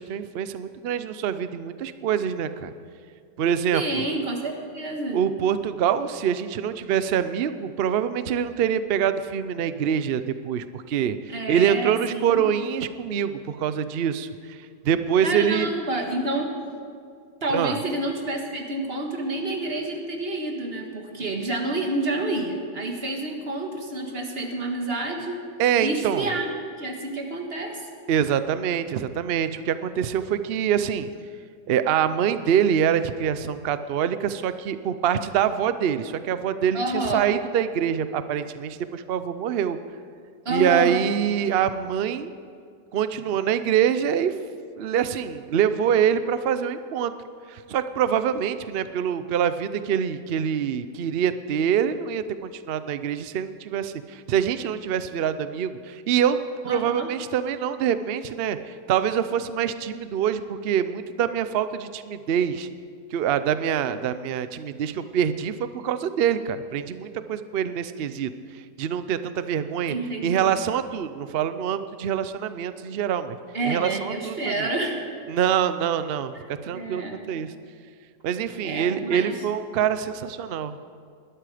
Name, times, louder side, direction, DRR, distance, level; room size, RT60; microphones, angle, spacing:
voice 1, 0.0-2.7 3.4-4.0 5.1-14.3 14.8-15.7 17.5-17.8 25.6-26.3 28.1-31.1 31.7-39.8 40.5-42.3 42.9-44.3 44.8-47.1 47.5-56.4 56.6-58.6 58.9-62.7 63.1-68.3 68.8-70.0 70.2-73.4 73.7-74.7 75.3-76.3 76.6-77.5 78.2-80.8, right 8 dB, 75° right, 12 dB, 0.5 m, -25 dB
voice 2, 3.7-5.2 11.3-12.5 15.2-16.5 17.4-25.4 25.8-27.9 36.7-37.3 40.5-41.0 56.6-57.1 69.9-70.5 73.5-75.0 76.4-77.2 78.6-79.3, right 2 dB, 35° right, 2 dB, 1.8 m, -29 dB
20.5 x 12.5 x 5.0 m, 2.2 s
omnidirectional pair, 1.9 m